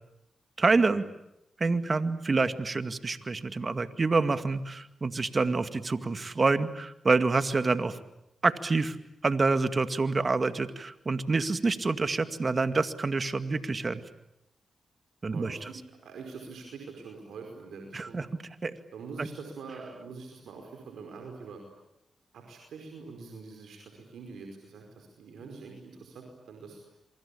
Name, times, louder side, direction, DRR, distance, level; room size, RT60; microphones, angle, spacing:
voice 1, 0.6-1.0 1.6-8.0 8.4-9.0 9.2-14.0 15.2-15.6 17.9-18.3 18.6-18.8 19.2-19.3, right 3 dB, 45° right, 10 dB, 2.1 m, -27 dB
voice 2, 15.3-15.8 16.0-18.2 18.9-21.6 22.3-26.8, right 4 dB, 80° right, 2 dB, 5.1 m, -44 dB
27.0 x 25.0 x 8.6 m, 0.83 s
supercardioid pair, 45°, 0 cm